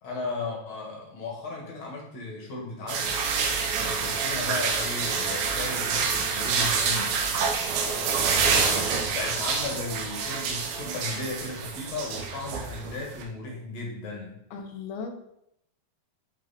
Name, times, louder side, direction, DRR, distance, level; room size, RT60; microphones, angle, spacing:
voice 1, 0.0-3.2 3.7-7.2 7.9-14.4, left 3 dB, 50° left, -2 dB, 2.3 m, -36 dB
sound 1, 2.9-13.2, right 5 dB, 75° right, 3.3 m, -27 dB
voice 2, 14.5-15.1, left 5 dB, 75° left, 5 dB, 3.1 m, -36 dB
13.0 x 4.6 x 4.3 m, 0.77 s
omnidirectional pair, 5.4 m